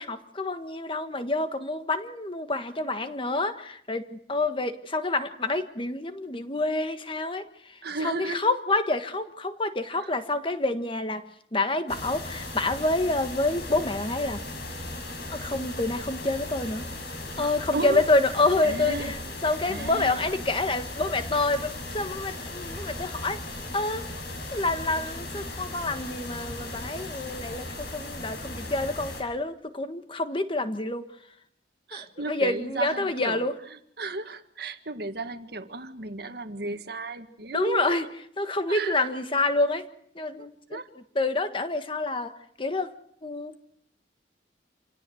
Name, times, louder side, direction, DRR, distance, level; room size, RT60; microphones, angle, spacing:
voice 1, 0.0-11.2 11.5-14.4 15.3-16.8 17.4-23.4 23.7-24.1 24.5-31.0 31.9-33.5 37.5-38.1 38.4-39.8 40.1-40.8 41.1-42.9 43.2-43.6, left 2 dB, 30° left, 9 dB, 1.5 m, -28 dB
voice 2, 7.8-8.4 17.7-18.0 18.6-19.1 19.7-20.2 31.9-33.4 33.7-38.0 38.7-39.1 40.4-40.9, right 2 dB, 55° right, 8 dB, 1.7 m, -34 dB
sound 1, 11.9-29.2, left 2 dB, 65° left, 5.9 m, -37 dB
27.5 x 17.0 x 7.8 m, 0.71 s
head